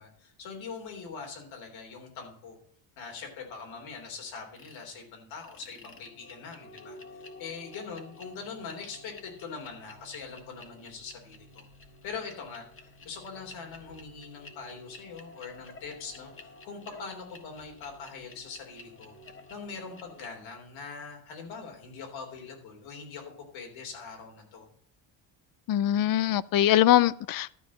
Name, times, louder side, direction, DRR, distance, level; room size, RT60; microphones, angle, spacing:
voice 1, 0.0-2.6 3.0-11.7 12.0-12.6 13.0-19.2 19.5-24.7, left 5 dB, 85° left, 1 dB, 3.5 m, -42 dB
sound 1, 4.6-4.9 5.4-20.3, left 2 dB, 25° left, 1.5 m, -51 dB
voice 2, 25.7-27.5, left 12 dB, 50° left, 20 dB, 0.5 m, -22 dB
12.5 x 4.7 x 7.2 m, 0.64 s
cardioid pair, 135°, 46 cm